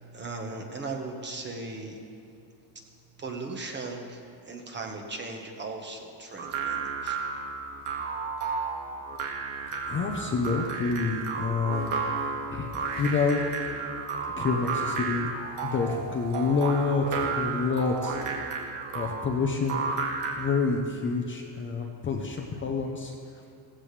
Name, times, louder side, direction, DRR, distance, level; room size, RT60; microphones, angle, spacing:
voice 1, 0.0-2.4 2.7-7.2, right 3 dB, 20° right, 2 dB, 1.3 m, -38 dB
sound 1, 6.4-20.6, right 5 dB, 80° right, 2.1 m, -32 dB
voice 2, 9.9-12.0 12.5-13.7 14.4-15.3 15.6-18.2 18.9-19.9 20.4-23.1, left 4 dB, 25° left, 1 dB, 0.8 m, -28 dB
16.5 x 15.0 x 3.3 m, 2.4 s
cardioid pair, 160°, 49 cm